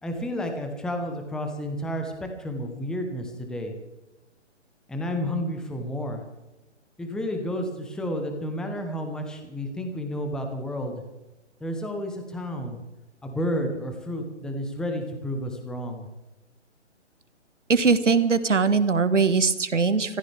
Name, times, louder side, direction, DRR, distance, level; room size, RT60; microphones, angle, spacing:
voice 1, 0.0-3.7 4.9-6.2 7.0-11.0 11.6-12.8 13.2-16.1, equal, ahead, 4 dB, 1.1 m, -31 dB
voice 2, 17.7-20.2, right 5 dB, 90° right, 11 dB, 1.7 m, -21 dB
24.0 x 15.0 x 3.6 m, 1.0 s
hypercardioid pair, 150°, 36 cm